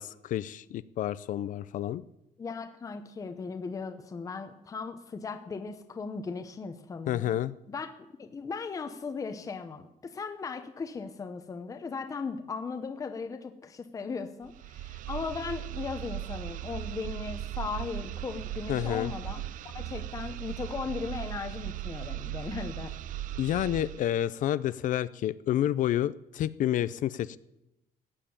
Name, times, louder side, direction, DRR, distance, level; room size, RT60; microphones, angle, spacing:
voice 1, 0.0-2.0 7.1-7.5 18.7-19.1 23.4-27.4, left 12 dB, 55° left, 16 dB, 0.5 m, -29 dB
voice 2, 2.4-7.4 7.7-19.4 19.7-22.9, left 5 dB, 20° left, 7 dB, 0.9 m, -37 dB
sound 1, 14.4-24.1, right 14 dB, 55° right, 0.4 m, -38 dB
15.0 x 9.1 x 8.7 m, 0.92 s
cardioid pair, 175°, 16 cm